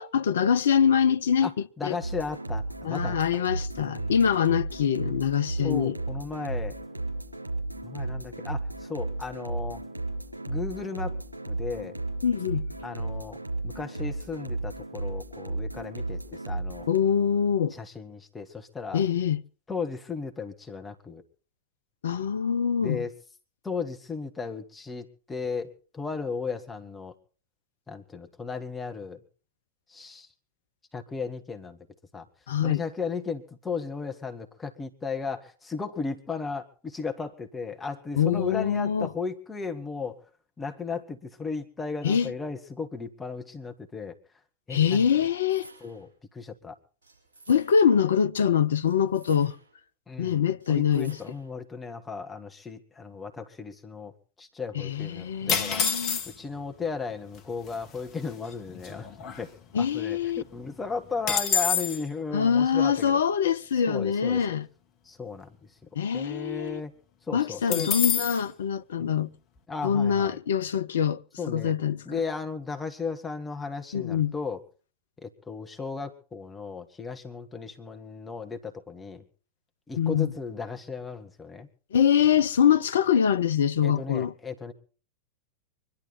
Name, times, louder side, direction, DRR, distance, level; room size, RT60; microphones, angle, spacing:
voice 1, 0.0-1.5 1.8-2.0 2.8-6.0 12.2-12.7 16.9-17.8 18.9-19.4 22.0-23.0 32.5-32.8 38.2-39.1 42.0-42.3 44.7-45.7 47.5-49.5 50.2-51.2 54.7-56.2 59.7-60.4 62.3-64.7 66.0-66.8 67.3-69.3 69.8-71.2 71.5-72.0 73.9-74.3 80.0-80.3 81.9-84.3, left 8 dB, 65° left, 0.7 m, -24 dB
voice 2, 1.8-3.4 3.8-4.2 5.6-6.7 7.8-9.8 10.5-11.2 11.5-11.9 12.8-13.4 13.6-16.9 17.7-19.1 19.7-21.2 22.8-23.1 23.6-27.1 27.9-29.2 29.9-30.3 30.9-31.8 32.1-32.3 32.6-40.2 40.6-44.2 44.7-45.1 45.8-46.8 50.1-50.4 50.7-54.1 54.4-55.8 56.3-59.1 59.4-59.5 59.8-63.2 63.9-64.4 65.1-65.5 66.1-66.9 67.3-67.9 69.0-69.1 69.7-70.4 71.4-71.8 72.1-74.6 75.2-79.2 79.9-81.7 83.8-84.7, left 5 dB, 15° left, 2.0 m, -35 dB
sound 1, 2.0-17.0, right 2 dB, 85° right, 4.4 m, -34 dB
sound 2, 45.2-46.2 47.0-48.0 48.8-49.8 50.6-51.6, right 2 dB, 65° right, 7.0 m, -54 dB
sound 3, 55.5-56.6 57.4-57.5 57.7-58.0 58.4-59.9 60.2-60.3 60.6-62.0 67.7-68.4, left 7 dB, 35° left, 1.7 m, -27 dB
24.5 x 11.5 x 4.3 m
figure-of-eight pair, 90°, 0 cm